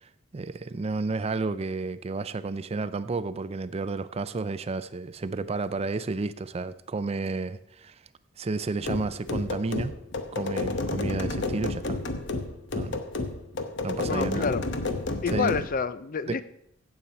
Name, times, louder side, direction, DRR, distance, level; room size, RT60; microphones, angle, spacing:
voice 1, 0.0-7.9 8.4-10.0 10.3-12.0 12.7-13.0 13.8-14.5 15.3-15.5 16.3-16.4, right 3 dB, 30° right, 14 dB, 0.4 m, -31 dB
sound 1, 8.8-15.7, left 2 dB, 65° left, 1.0 m, -31 dB
voice 2, 14.1-14.6 15.2-16.4, left 5 dB, 45° left, 14 dB, 0.5 m, -28 dB
16.0 x 7.3 x 4.3 m, 0.75 s
head